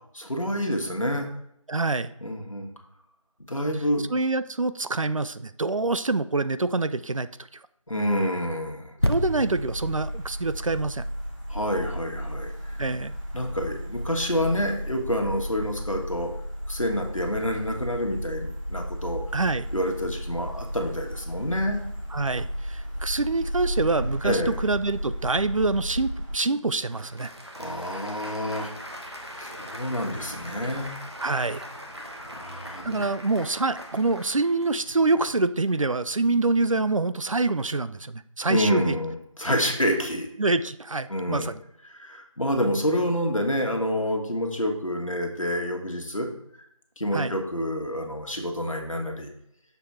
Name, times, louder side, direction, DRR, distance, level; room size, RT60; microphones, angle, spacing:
voice 1, 0.1-1.3 2.2-2.7 3.5-4.0 7.9-8.9 11.5-12.8 13.3-16.3 16.7-19.2 19.7-21.8 24.2-24.5 27.6-28.7 29.4-30.9 32.1-33.1 38.5-40.3 41.1-41.5 41.9-46.3 47.0-49.3, equal, 70° left, 2 dB, 1.4 m, -28 dB
voice 2, 1.7-2.1 4.1-7.3 9.0-11.0 12.8-13.1 19.3-19.7 22.1-27.3 31.2-31.6 32.8-38.9 40.4-41.6 47.1-47.4, right 3 dB, 70° right, 13 dB, 0.4 m, -26 dB
sound 1, 9.0-12.6 13.2-13.3, equal, 45° left, 0.4 m, -31 dB
Truck Driving, 9.0-26.4, equal, 35° right, 1.9 m, -34 dB
Applause / Crowd, 25.8-35.3, equal, 50° right, 0.9 m, -42 dB
6.7 x 3.6 x 4.4 m, 0.74 s
figure-of-eight pair, 180°, 18 cm